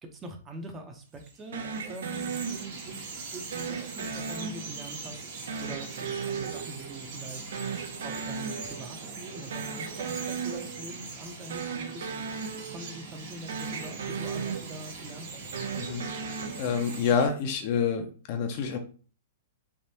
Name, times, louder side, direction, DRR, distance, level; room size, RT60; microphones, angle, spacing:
voice 1, 0.0-5.2 5.6-7.5 8.0-12.1 12.5-15.5, right 1 dB, 20° right, 3 dB, 0.6 m, -44 dB
Bird vocalization bird call bird song, 1.1-17.3, right 4 dB, 60° right, 1.2 m, -42 dB
sound 1, 1.5-3.0 3.5-5.1 5.5-7.3 7.5-9.0 9.3-11.0 11.4-13.2 13.5-15.1 15.4-17.2, right 5 dB, 75° right, 0.5 m, -36 dB
voice 2, 15.8-18.8, left 6 dB, 50° left, 5 dB, 0.6 m, -28 dB
3.4 x 2.5 x 2.8 m, 0.38 s
hypercardioid pair, 130°, 0 cm